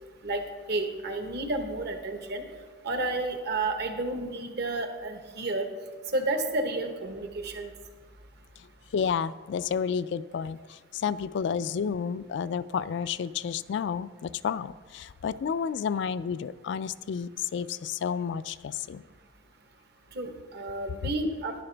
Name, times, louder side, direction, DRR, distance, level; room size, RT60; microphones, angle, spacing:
voice 1, 0.7-2.4 2.8-5.7 6.1-7.7 20.1-21.5, right 2 dB, 60° right, 5 dB, 1.1 m, -31 dB
voice 2, 8.9-19.0, left 7 dB, 65° left, 16 dB, 0.3 m, -31 dB
11.0 x 11.0 x 3.4 m, 1.5 s
head